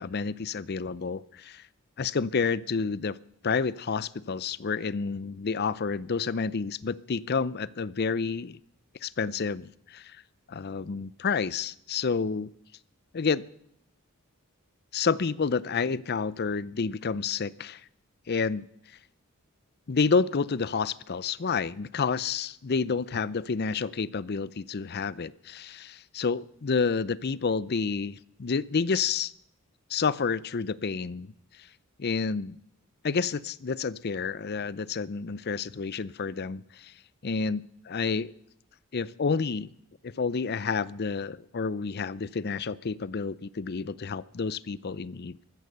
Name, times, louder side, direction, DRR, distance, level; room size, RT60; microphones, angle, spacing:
voice 1, 0.0-1.6 2.0-3.2 3.4-8.6 9.0-10.2 10.5-12.5 13.1-13.5 14.9-17.8 18.3-18.7 19.9-29.3 29.9-31.3 32.0-32.6 33.0-36.9 37.2-38.3 38.9-39.7 40.0-45.4, left 5 dB, 50° left, 19 dB, 0.5 m, -29 dB
14.5 x 14.0 x 6.8 m, 0.71 s
head